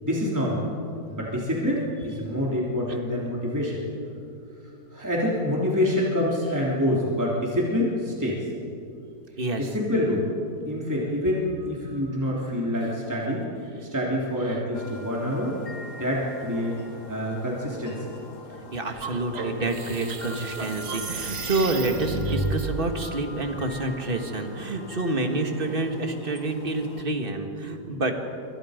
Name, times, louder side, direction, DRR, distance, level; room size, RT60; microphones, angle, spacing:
voice 1, 0.0-0.7 1.1-3.8 4.9-8.5 9.6-10.3 10.7-13.5 13.8-15.6 16.0-16.8 17.1-18.1, left 1 dB, 10° right, -4 dB, 3.4 m, -26 dB
voice 2, 9.4-9.7 18.7-28.1, right 2 dB, 35° right, 4 dB, 2.0 m, -28 dB
sound 1, 14.7-27.0, left 2 dB, 55° left, 2.0 m, -43 dB
sound 2, 18.9-22.6, right 3 dB, 90° right, 2.2 m, -32 dB
27.0 x 25.0 x 5.2 m, 2.6 s
omnidirectional pair, 1.7 m